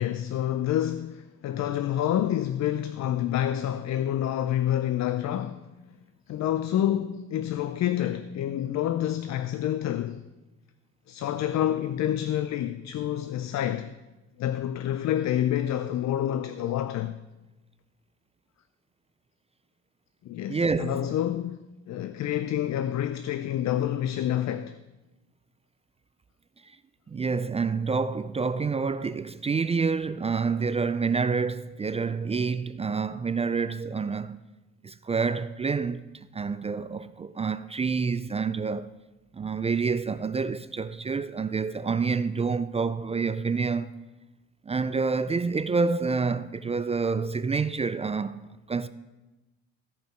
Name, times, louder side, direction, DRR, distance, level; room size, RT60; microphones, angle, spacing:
voice 1, 0.0-5.7 6.3-10.2 11.1-13.9 14.4-17.2 20.2-21.6 21.9-24.8, left 11 dB, 65° left, 0.5 m, -28 dB
voice 2, 20.5-21.1 27.1-34.4 34.8-36.1 36.3-38.9 39.3-43.9 44.7-48.9, right 5 dB, 20° right, 0.3 m, -28 dB
16.0 x 5.5 x 4.4 m
cardioid pair, 90°, 30 cm